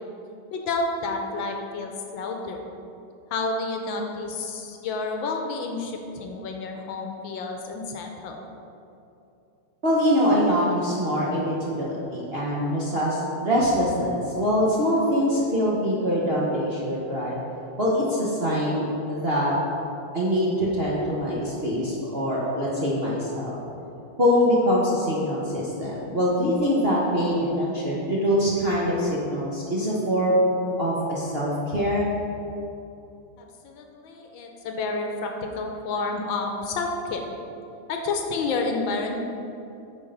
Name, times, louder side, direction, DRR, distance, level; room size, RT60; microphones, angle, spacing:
voice 1, 0.5-2.6 3.3-8.4 33.4-37.3 37.9-39.1, left 3 dB, 70° left, 2 dB, 1.4 m, -30 dB
voice 2, 9.8-17.4 17.8-19.5 20.1-23.6 24.2-30.4 30.8-32.1, equal, 40° right, -6 dB, 0.9 m, -24 dB
8.7 x 4.6 x 5.1 m, 2.8 s
omnidirectional pair, 2.3 m